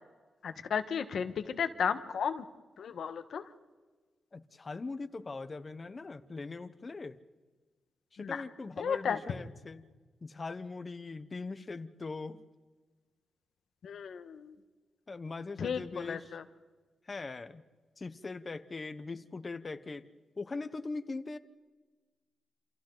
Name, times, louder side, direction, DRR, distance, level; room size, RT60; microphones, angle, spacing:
voice 1, 0.4-2.4 2.8-3.4 8.2-8.4 8.8-9.2 13.8-14.5 15.6-16.4, left 7 dB, 65° left, 9 dB, 1.3 m, -34 dB
voice 2, 4.3-7.2 8.1-9.8 10.2-12.4 15.1-16.4 17.1-17.6 18.0-20.1 20.4-21.4, left 3 dB, 30° left, 11 dB, 0.9 m, -41 dB
28.5 x 27.5 x 3.9 m, 1.3 s
wide cardioid pair, 140°, 0 cm